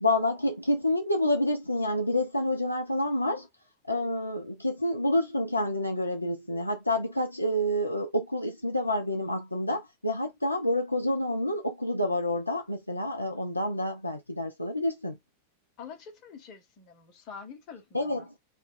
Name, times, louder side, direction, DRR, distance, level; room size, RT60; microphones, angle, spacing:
voice 1, 0.0-3.5 3.9-15.2 17.9-18.3, left 1 dB, 85° left, 0.4 m, -28 dB
voice 2, 15.8-18.3, left 6 dB, 40° left, 1.0 m, -46 dB
2.4 x 2.2 x 3.7 m
figure-of-eight pair, 90°, 0 cm